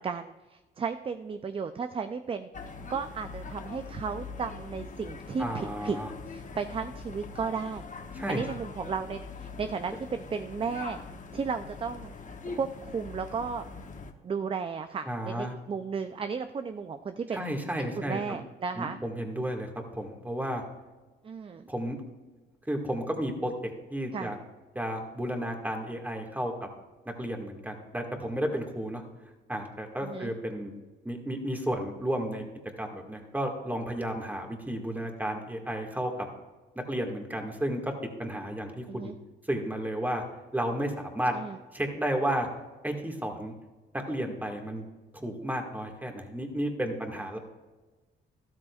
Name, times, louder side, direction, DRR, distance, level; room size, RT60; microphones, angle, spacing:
voice 1, 0.0-2.5 2.9-6.0 6.3-7.9 8.3-11.0 11.3-12.1 12.5-13.7 14.2-17.5 17.8-19.0 21.2-21.7 24.1-24.3 30.0-30.3 38.9-39.1 41.3-41.6, right 5 dB, 25° right, 9 dB, 0.4 m, -34 dB
sound 1, 2.5-14.1, left 4 dB, 40° left, 0.9 m, -42 dB
voice 2, 5.4-6.1 8.1-8.4 15.1-15.5 17.3-18.4 18.8-20.6 21.7-22.0 22.7-23.5 23.9-24.4 24.8-26.5 27.2-29.0 29.5-30.7 31.0-32.4 32.8-36.3 36.9-37.9 38.2-39.1 39.5-40.2 40.5-41.4 41.7-42.5 42.8-43.5 43.9-44.8 45.1-47.4, right 1 dB, 10° right, 2 dB, 1.9 m, -32 dB
12.5 x 12.5 x 2.4 m, 1.2 s
cardioid pair, 90°, 20 cm